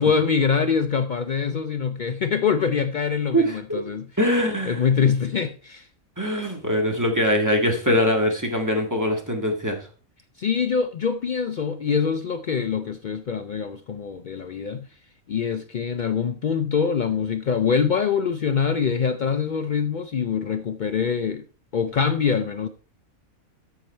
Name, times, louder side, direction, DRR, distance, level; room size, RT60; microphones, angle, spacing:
voice 1, 0.0-4.1 4.7-5.9 10.4-14.9 15.3-21.4 21.7-22.7, left 6 dB, 85° left, 0.4 m, -24 dB
voice 2, 3.3-3.8 4.2-4.8 6.2-9.8, equal, 15° right, 1.7 m, -22 dB
13.0 x 4.8 x 4.3 m
omnidirectional pair, 1.5 m